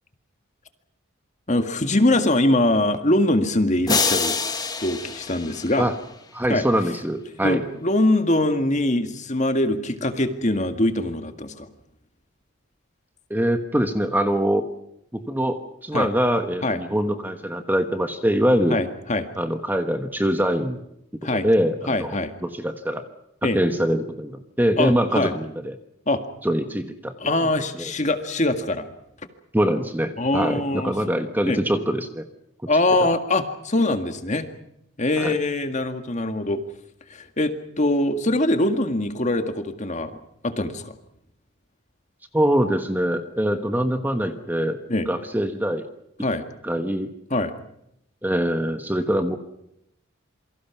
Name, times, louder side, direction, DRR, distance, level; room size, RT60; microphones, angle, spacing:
voice 1, 1.5-4.4 4.8-5.9 6.5-6.6 7.4-11.7 15.9-16.1 16.6-16.8 18.7-19.3 21.2-21.5 21.9-22.3 23.4-23.6 24.8-25.3 26.1-26.2 27.2-28.9 30.2-30.9 31.5-31.6 32.7-34.5 35.0-36.6 37.1-40.1 40.4-40.9 44.9-45.1 46.2-46.4 47.3-47.5, left 1 dB, 35° left, 8 dB, 1.9 m, -23 dB
sound 1, 3.9-6.2, left 4 dB, 20° left, 1.6 m, -26 dB
voice 2, 6.3-7.6 13.3-14.7 15.1-18.8 19.4-20.8 21.4-22.2 22.4-23.0 23.5-25.7 26.4-27.1 27.7-27.8 29.5-32.2 35.2-35.4 42.3-44.8 45.1-45.9 46.6-47.1 48.2-49.4, equal, 10° right, 7 dB, 1.3 m, -23 dB
27.5 x 24.0 x 6.0 m, 0.78 s
head